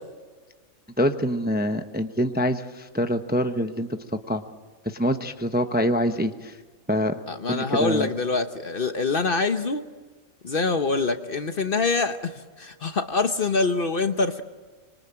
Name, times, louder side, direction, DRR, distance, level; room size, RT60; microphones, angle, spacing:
voice 1, 1.0-4.0 4.3-4.4 4.8-6.6 6.9-7.2 7.5-8.1, equal, 10° right, 7 dB, 0.8 m, -25 dB
voice 2, 7.3-9.9 10.4-14.4, left 3 dB, 45° left, 8 dB, 1.1 m, -25 dB
25.5 x 24.0 x 8.9 m, 1.4 s
omnidirectional pair, 1.5 m